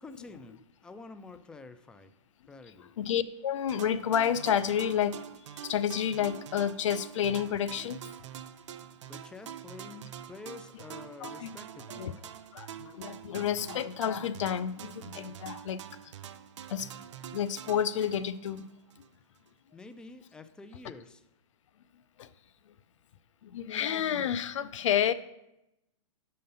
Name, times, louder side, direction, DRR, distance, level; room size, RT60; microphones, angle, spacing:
voice 1, 0.0-2.1 2.5-2.9 9.1-12.2 19.7-21.2, left 3 dB, 5° left, 10 dB, 0.3 m, -48 dB
voice 2, 2.8-8.0 11.2-11.5 11.9-12.1 12.5-16.1 16.7-16.9 17.3-18.7 22.2-22.3 23.4-25.1, left 9 dB, 70° left, 16 dB, 0.4 m, -30 dB
sound 1, 3.7-19.1, right 9 dB, 65° right, 0.5 m, -46 dB
6.4 x 5.7 x 5.3 m, 0.87 s
hypercardioid pair, 125°, 16 cm